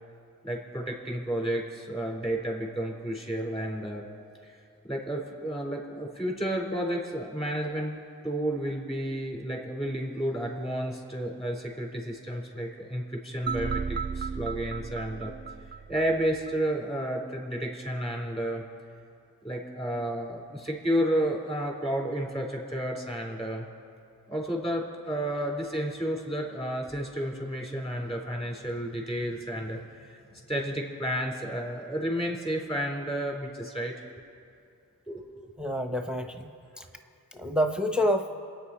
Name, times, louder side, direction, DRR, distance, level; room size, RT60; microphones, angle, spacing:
voice 1, 0.4-4.1 4.4-4.6 4.8-7.9 8.2-15.3 15.9-18.6 19.4-23.6 24.3-30.2 30.5-33.9 35.1-35.4, right 1 dB, 15° left, -1 dB, 4.0 m, -31 dB
sound 1, 13.5-16.5, right 5 dB, 30° right, 0.5 m, -34 dB
voice 2, 35.6-36.5 36.8-36.9 37.3-38.3, equal, 5° right, 6 dB, 0.8 m, -27 dB
26.5 x 9.2 x 4.3 m, 2.5 s
cardioid pair, 45°, 36 cm